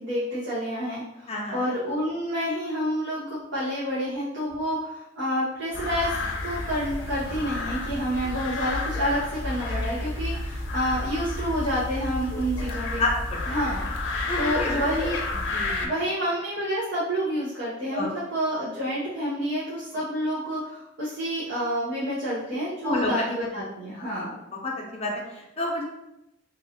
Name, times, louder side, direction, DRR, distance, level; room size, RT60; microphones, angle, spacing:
voice 1, 0.0-6.1 6.4-13.0 13.4-13.9 14.4-15.2 15.8-24.4, equal, 75° right, -9 dB, 0.9 m, -29 dB
voice 2, 1.3-1.6 12.5-13.4 14.3-15.1 15.5-15.9 17.9-18.1 22.8-23.1 24.0-24.1 24.6-25.8, left 2 dB, 35° left, -2 dB, 0.6 m, -29 dB
sound 1, 5.7-15.9, left 2 dB, 90° left, 0.5 m, -31 dB
3.1 x 2.5 x 2.8 m, 0.88 s
head